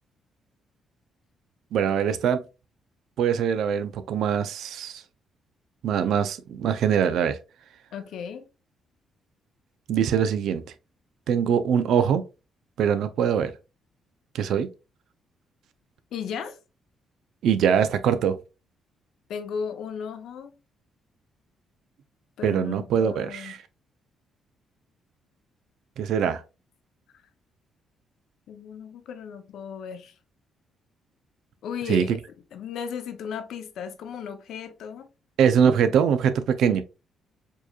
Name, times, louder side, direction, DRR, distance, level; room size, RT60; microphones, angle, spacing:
voice 1, 1.7-2.4 3.2-5.0 5.8-7.4 9.9-10.6 11.3-12.2 12.8-13.5 14.3-14.7 17.4-18.4 22.4-23.6 26.0-26.4 31.9-32.1 35.4-36.8, right 8 dB, 75° right, 0.5 m, -23 dB
voice 2, 7.9-8.4 16.1-16.6 19.3-20.5 22.4-23.5 28.5-30.1 31.6-32.2 32.5-35.1, left 6 dB, 75° left, 0.7 m, -35 dB
4.5 x 3.0 x 2.4 m
cardioid pair, 90°, 0 cm